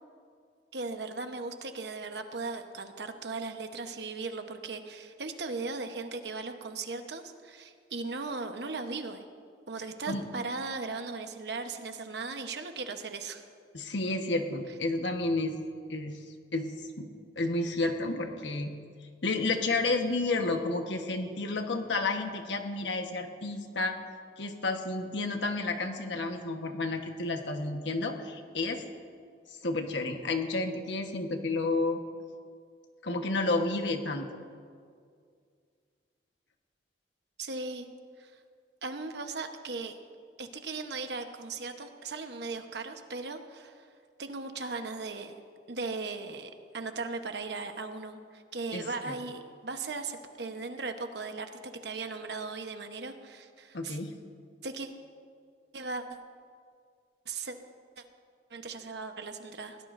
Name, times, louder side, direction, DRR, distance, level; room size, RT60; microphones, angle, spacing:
voice 1, 0.7-9.2 9.7-13.4 37.4-37.9 38.2-38.3 38.8-39.9 40.4-43.9 44.2-45.4 45.7-54.0 54.6-54.9 55.7-56.0 57.3-57.6 58.5-59.8, right 3 dB, 70° right, 6 dB, 1.0 m, -38 dB
voice 2, 13.7-15.6 15.9-16.1 16.5-17.1 17.3-18.7 19.2-23.9 24.4-28.8 29.6-32.0 33.0-34.3 48.7-49.1 53.7-54.1, left 2 dB, 85° left, 5 dB, 1.2 m, -31 dB
21.0 x 17.0 x 2.6 m, 2.2 s
head